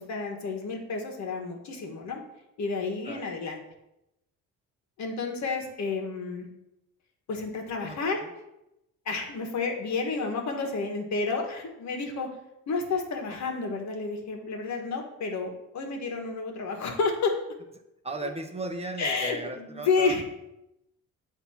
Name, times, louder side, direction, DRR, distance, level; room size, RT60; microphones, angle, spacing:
voice 1, 0.0-2.2 2.6-3.6 5.0-6.5 7.3-8.2 9.0-12.3 12.7-17.3 18.2-18.3 19.0-20.2, left 4 dB, 65° left, 2 dB, 1.4 m, -30 dB
voice 2, 7.8-8.3 18.0-20.2, right 2 dB, 20° right, 5 dB, 0.7 m, -36 dB
8.1 x 2.8 x 5.6 m, 0.88 s
cardioid pair, 90°, 30 cm